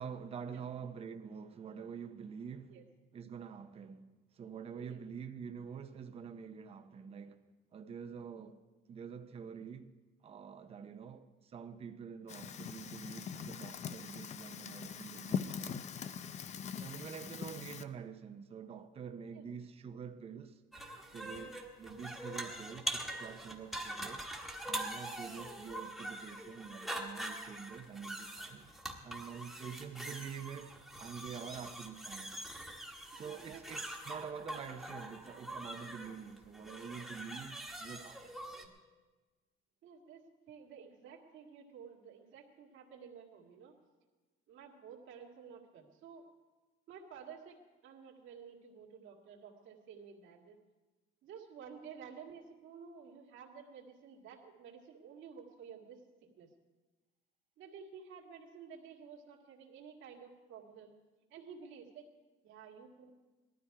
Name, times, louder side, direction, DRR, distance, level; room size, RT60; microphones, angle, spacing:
voice 1, 0.0-2.8 3.1-7.4 7.7-8.6 8.9-9.9 10.2-15.9 16.8-20.6 21.1-24.3 24.7-28.7 29.0-32.4 33.1-38.4, right 7 dB, 30° right, 0.7 m, -47 dB
Fire, 12.3-17.8, left 7 dB, 35° left, 0.5 m, -42 dB
sound 1, 20.7-38.6, right 1 dB, ahead, 1.3 m, -44 dB
voice 2, 33.2-33.6 38.5-38.7 39.8-43.7 44.5-46.2 46.9-47.6 47.8-50.6 51.2-56.5 57.6-60.9 61.3-62.1 62.4-63.1, right 6 dB, 70° right, 2.0 m, -52 dB
18.5 x 12.5 x 4.7 m
cardioid pair, 165°, 21 cm